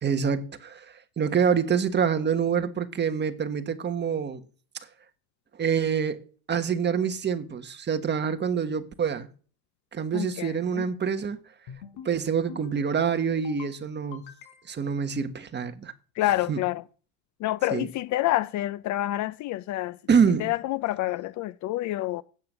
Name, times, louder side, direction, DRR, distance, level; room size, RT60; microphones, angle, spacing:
voice 1, 0.0-4.4 5.6-6.2 6.5-9.3 9.9-11.4 12.0-14.2 14.7-15.9 16.5-16.6 17.7-17.9 20.1-20.5, right 7 dB, 25° right, 1.5 m, -26 dB
voice 2, 10.1-10.9 16.2-16.8 17.4-20.0 20.4-22.2, left 15 dB, 45° left, 0.6 m, -28 dB
sound 1, 11.7-12.1 12.5-12.9 13.3-13.7 14.1-14.9, left 8 dB, 65° left, 4.9 m, -45 dB
12.5 x 9.1 x 6.9 m
supercardioid pair, 110°, 43 cm